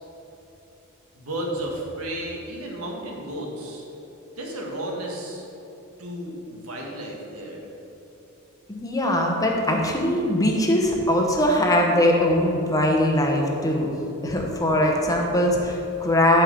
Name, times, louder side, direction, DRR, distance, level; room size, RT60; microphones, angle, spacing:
voice 1, 1.1-3.8 4.4-5.5 6.0-7.6, right 1 dB, 80° right, -1 dB, 1.6 m, -33 dB
voice 2, 8.7-13.9 14.2-16.4, left 1 dB, 15° left, 0 dB, 1.0 m, -21 dB
11.0 x 4.6 x 5.2 m, 3.0 s
head